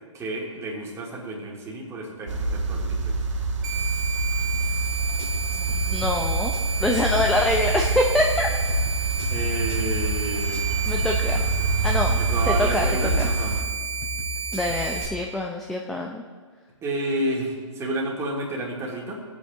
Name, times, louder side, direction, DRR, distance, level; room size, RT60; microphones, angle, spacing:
voice 1, 0.1-3.2 9.3-10.7 11.3-11.7 12.2-13.6 16.8-19.2, right 1 dB, 15° right, -2 dB, 2.4 m, -30 dB
sound 1, 2.3-13.6, right 2 dB, 70° right, 1.8 m, -26 dB
sound 2, 3.6-15.1, right 7 dB, 40° right, 2.2 m, -32 dB
sound 3, 4.5-15.2, left 5 dB, 50° left, 3.0 m, -36 dB
voice 2, 5.5-8.5 10.9-11.4 11.8-12.2 12.5-12.9 13.2-13.3 14.5-16.2, left 1 dB, ahead, 1 dB, 0.5 m, -25 dB
18.0 x 8.2 x 3.6 m, 1.5 s
hypercardioid pair, 130°, 16 cm